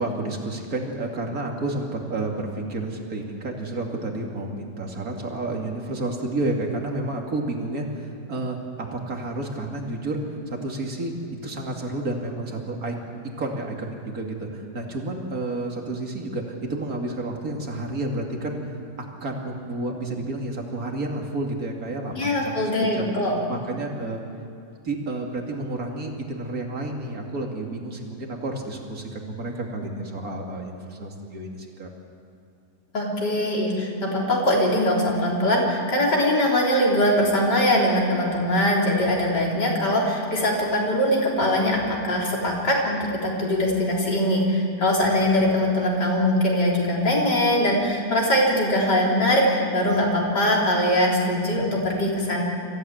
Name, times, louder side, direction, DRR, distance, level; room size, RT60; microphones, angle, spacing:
voice 1, 0.0-11.2 11.4-13.0 13.4-18.6 19.2-23.1 23.5-24.2 24.8-31.9, right 2 dB, 55° right, 1 dB, 2.9 m, -30 dB
voice 2, 22.1-23.4 32.9-52.4, left 1 dB, 80° left, -3 dB, 4.4 m, -22 dB
24.5 x 15.0 x 8.9 m, 2.5 s
omnidirectional pair, 1.8 m